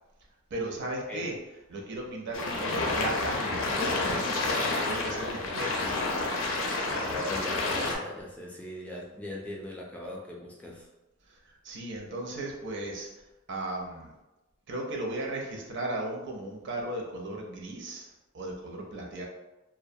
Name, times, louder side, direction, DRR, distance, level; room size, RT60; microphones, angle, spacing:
voice 1, 0.5-1.3 1.7-4.5 4.8-5.9 11.5-13.1 13.5-14.1 14.7-19.2, right 2 dB, 60° right, 0 dB, 0.5 m, -36 dB
sound 1, 2.3-8.0, left 2 dB, 75° left, 0.5 m, -29 dB
voice 2, 5.4-6.0 7.0-10.9, left 1 dB, 5° left, -3 dB, 0.3 m, -39 dB
2.3 x 2.1 x 2.6 m, 1.0 s
head